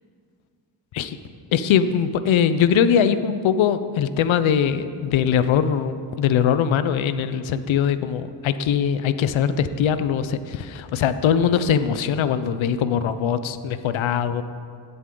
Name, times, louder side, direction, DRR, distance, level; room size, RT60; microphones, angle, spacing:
voice 1, 1.5-14.4, left 8 dB, 80° left, 12 dB, 0.7 m, -21 dB
16.0 x 8.0 x 3.9 m, 2.3 s
cardioid pair, 85°, 46 cm